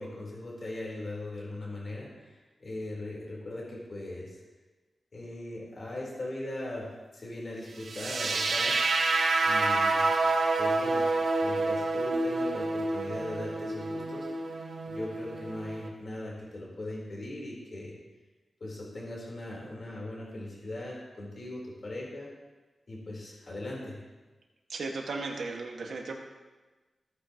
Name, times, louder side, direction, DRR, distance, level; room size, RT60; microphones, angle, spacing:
voice 1, 0.0-4.4 5.1-8.8 9.4-10.1 10.6-11.1 11.4-17.9 18.6-22.3 22.9-24.0, left 1 dB, 45° left, -4 dB, 3.7 m, -39 dB
sound 1, 7.9-15.9, right 3 dB, 65° right, 1.0 m, -28 dB
voice 2, 24.7-26.1, right 3 dB, 85° right, 1 dB, 1.6 m, -35 dB
16.5 x 9.4 x 3.0 m, 1.2 s
wide cardioid pair, 155°, 0 cm